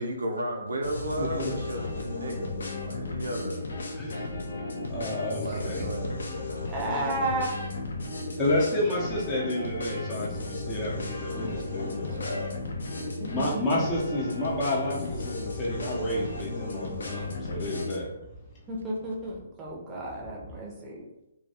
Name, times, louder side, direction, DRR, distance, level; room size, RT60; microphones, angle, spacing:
voice 1, 0.0-2.5 2.8-3.6 3.9-4.0 5.4-6.2 12.1-12.5, equal, 80° right, 2 dB, 0.5 m, -33 dB
sound 1, 0.8-18.0, left 2 dB, 75° left, 0.4 m, -34 dB
voice 2, 1.2-1.5 4.0-4.2 4.9-5.8 8.4-12.2 12.9-18.1, left 1 dB, 25° left, -4 dB, 0.7 m, -30 dB
voice 3, 6.7-7.5 12.2-12.3 13.2-13.8 18.7-21.0, right 2 dB, 15° right, -4 dB, 0.6 m, -33 dB
2.2 x 2.2 x 2.8 m, 0.92 s
hypercardioid pair, 140°, 0 cm